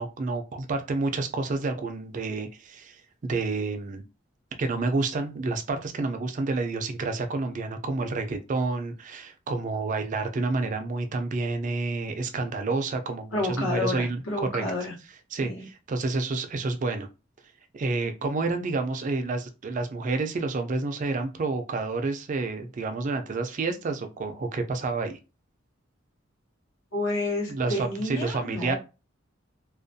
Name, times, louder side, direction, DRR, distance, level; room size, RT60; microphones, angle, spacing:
voice 1, 0.0-4.0 4.6-14.2 14.5-14.6 15.3-17.1 17.7-25.2 27.5-28.8, right 3 dB, 40° right, 0.3 m, -29 dB
voice 2, 13.3-14.9 15.4-15.7 26.9-28.8, left 2 dB, 90° left, 1.0 m, -30 dB
2.4 x 2.2 x 2.6 m
head